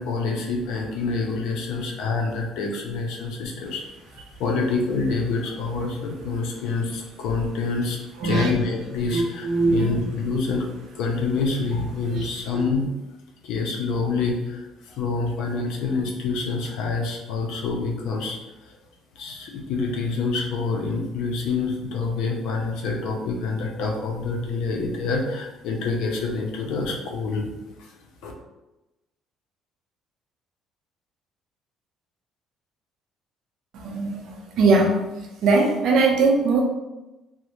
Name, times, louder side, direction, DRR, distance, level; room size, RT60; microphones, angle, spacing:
voice 1, 0.0-3.8 4.1-10.7 10.9-12.9 13.4-18.4 18.7-18.8 19.2-27.5 28.2-28.3, left 4 dB, 75° left, 1 dB, 0.5 m, -27 dB
voice 2, 8.2-8.5 9.1-9.9 12.1-12.2 33.8-34.2 34.5-35.0 35.4-36.6, right 3 dB, 60° right, 0 dB, 0.5 m, -20 dB
2.5 x 2.1 x 2.9 m, 1.0 s
cardioid pair, 160°, 0 cm